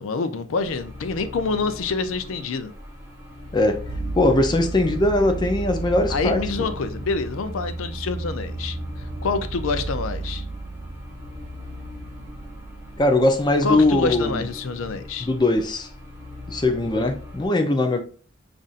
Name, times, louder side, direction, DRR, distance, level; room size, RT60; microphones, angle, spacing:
voice 1, 0.0-2.7 6.1-8.8 9.2-10.4 13.6-15.3, left 4 dB, 80° left, 0.4 m, -27 dB
sound 1, 0.5-17.5, left 2 dB, 15° right, 1.0 m, -40 dB
sound 2, 3.9-13.5, right 3 dB, 75° right, 0.6 m, -33 dB
voice 2, 4.1-6.4 13.0-14.4 15.2-15.9 16.5-18.0, left 2 dB, 20° left, 0.5 m, -20 dB
5.3 x 2.5 x 2.4 m
head